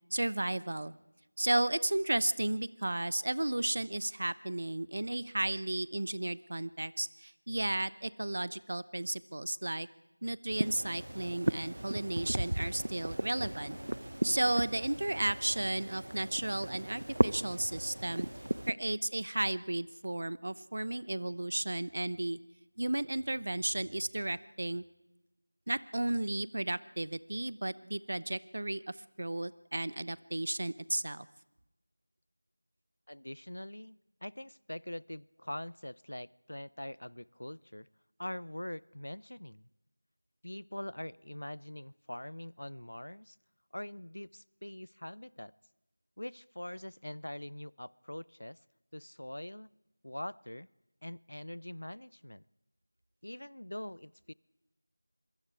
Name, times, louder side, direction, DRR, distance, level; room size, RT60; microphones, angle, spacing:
voice 1, 0.1-0.9 1.4-9.9 10.2-13.8 14.2-18.3 18.7-22.4 22.8-24.8 25.7-31.3, right 1 dB, 50° right, 18 dB, 0.8 m, -33 dB
sound 1, 10.5-18.7, right 1 dB, 75° right, 1.0 m, -35 dB
voice 2, 33.1-37.9 38.2-39.7 40.4-43.4 43.7-45.5 46.2-48.6 48.9-49.7 50.0-50.7 51.0-52.4 53.2-54.3, left 1 dB, 85° left, 23 dB, 0.6 m, -43 dB
26.0 x 23.0 x 4.8 m, 1.0 s
figure-of-eight pair, 175°, 0 cm